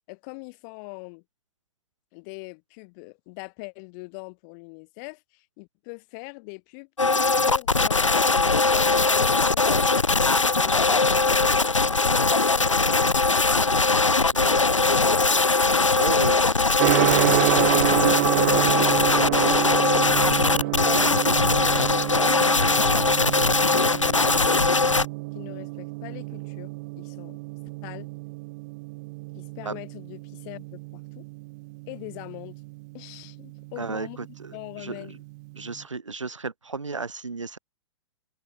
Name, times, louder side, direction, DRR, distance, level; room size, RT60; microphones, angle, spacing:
voice 1, 0.1-1.2 2.1-6.9 7.5-8.4 9.1-10.1 10.6-14.0 16.0-16.7 19.1-19.8 20.2-24.4 24.7-25.0 25.3-27.4 27.8-28.1 29.3-31.2 31.9-32.6 32.9-34.2 34.5-35.2, left 35 dB, 40° left, 4.2 m, -42 dB
sound 1, 7.0-25.1, left 3 dB, 85° left, 1.7 m, -21 dB
voice 2, 14.3-15.0 16.0-16.5 18.0-18.2 29.6-29.8 33.8-34.1 34.4-35.1 35.6-37.6, right 4 dB, 80° right, 5.9 m, -34 dB
Gong, 16.8-35.8, right 25 dB, 35° right, 0.4 m, -29 dB
figure-of-eight pair, 105°, 16 cm